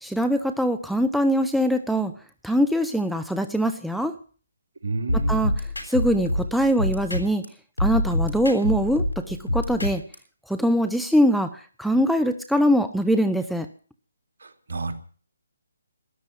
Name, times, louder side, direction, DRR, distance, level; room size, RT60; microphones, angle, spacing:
voice 1, 0.0-2.1 2.4-4.1 5.1-5.5 5.8-7.4 7.8-10.0 10.5-11.5 11.8-13.7, equal, ahead, 7 dB, 0.9 m, -22 dB
voice 2, 4.8-5.4 14.7-14.9, right 3 dB, 60° right, 6 dB, 2.9 m, -29 dB
sound 1, 5.1-7.5 7.8-10.2, left 1 dB, 85° left, 7.4 m, -26 dB
13.5 x 11.5 x 9.5 m, 0.41 s
figure-of-eight pair, 145°, 0 cm